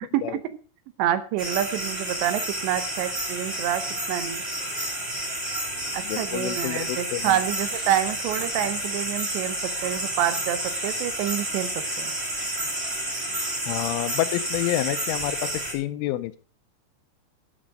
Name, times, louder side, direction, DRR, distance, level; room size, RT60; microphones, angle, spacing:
voice 1, 1.0-3.8 4.1-4.4 5.9-11.7 12.0-12.1, right 11 dB, 75° right, 12 dB, 2.9 m, -27 dB
sound 1, 1.4-15.7, right 1 dB, 15° right, 2.4 m, -30 dB
voice 2, 6.0-7.4 13.7-16.4, left 15 dB, 90° left, 12 dB, 3.3 m, -28 dB
13.0 x 7.3 x 5.0 m, 0.37 s
omnidirectional pair, 5.5 m